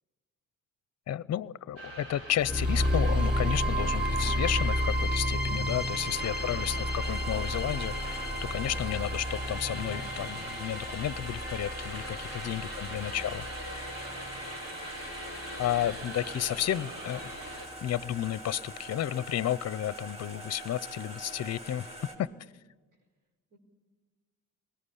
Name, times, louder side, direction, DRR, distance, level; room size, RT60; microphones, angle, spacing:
voice 1, 1.1-13.5 15.6-17.2 17.8-21.9, left 11 dB, 50° left, 20 dB, 0.6 m, -32 dB
sound 1, 1.8-17.7, equal, 45° right, 6.0 m, -42 dB
sound 2, 2.4-16.4, equal, ahead, 1.0 m, -32 dB
sound 3, 7.0-22.2, right 1 dB, 20° right, 3.8 m, -45 dB
voice 2, 8.5-9.1 12.4-13.2 14.1-15.1 15.9-17.1 22.2-22.4 23.5-23.6, right 2 dB, 70° right, 5 dB, 4.7 m, -55 dB
21.5 x 18.5 x 10.0 m, 1.3 s
cardioid pair, 115°, 33 cm